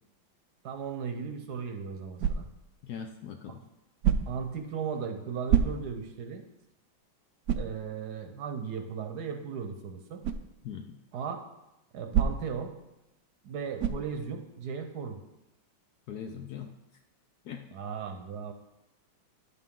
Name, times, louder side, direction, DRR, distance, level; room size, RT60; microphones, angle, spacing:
voice 1, 0.6-2.5 4.3-6.4 7.6-10.2 11.1-11.4 11.9-12.7 13.4-15.2 17.7-18.5, right 6 dB, 65° right, 5 dB, 1.2 m, -36 dB
sound 1, 2.2-2.7 4.0-4.5 5.5-6.1 6.6-6.7 7.4-7.8 10.2-10.5 12.1-12.6 13.8-14.1, right 8 dB, 80° right, 0.8 m, -27 dB
voice 2, 2.8-3.6 10.6-11.0 16.1-16.7 17.4-17.6, left 7 dB, 70° left, 5 dB, 1.0 m, -40 dB
10.5 x 6.8 x 3.7 m, 0.92 s
omnidirectional pair, 2.1 m